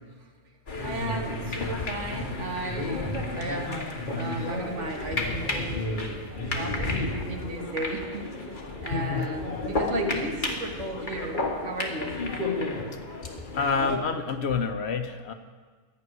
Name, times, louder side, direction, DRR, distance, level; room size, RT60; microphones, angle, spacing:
sound 1, 0.7-14.0, left 2 dB, 40° left, 1.7 m, -31 dB
voice 1, 0.8-3.8 4.1-5.8 6.5-8.3 8.8-12.2, right 2 dB, 70° right, 2 dB, 1.9 m, -35 dB
voice 2, 8.9-9.3 13.5-15.3, left 5 dB, 60° left, 7 dB, 1.0 m, -28 dB
13.0 x 6.2 x 9.3 m, 1.5 s
omnidirectional pair, 1.3 m